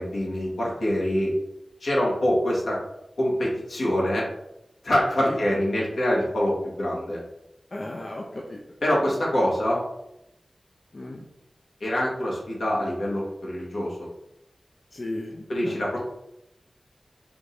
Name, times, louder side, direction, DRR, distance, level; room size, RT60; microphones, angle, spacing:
voice 1, 0.0-1.3 1.8-2.8 3.2-4.3 4.8-7.2 8.8-9.8 11.8-14.0 15.5-16.0, equal, 85° left, -5 dB, 1.5 m, -25 dB
voice 2, 7.7-8.6 10.9-11.2 14.9-15.8, left 1 dB, 55° left, -1 dB, 0.6 m, -35 dB
5.0 x 2.6 x 3.2 m, 0.85 s
wide cardioid pair, 60°, 0 cm